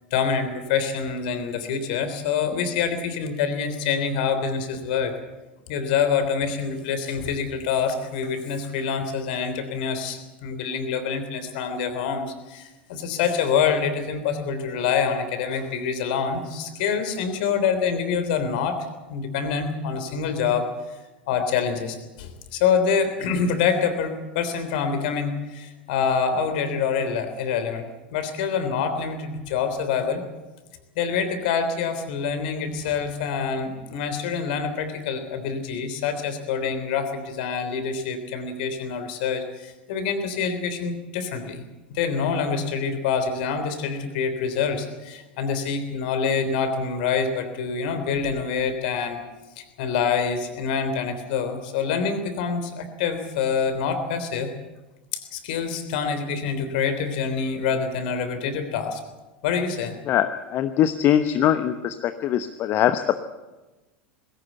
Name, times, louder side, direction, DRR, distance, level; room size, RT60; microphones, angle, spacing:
voice 1, 0.1-5.1 5.7-20.9 21.3-27.8 28.1-30.2 30.9-41.6 41.9-49.2 49.6-54.5 55.1-59.0 59.4-59.9, left 6 dB, 60° left, 9 dB, 3.4 m, -26 dB
voice 2, 60.1-63.2, left 11 dB, 40° left, 10 dB, 1.0 m, -22 dB
20.5 x 17.0 x 8.1 m, 1.1 s
figure-of-eight pair, 85°, 6 cm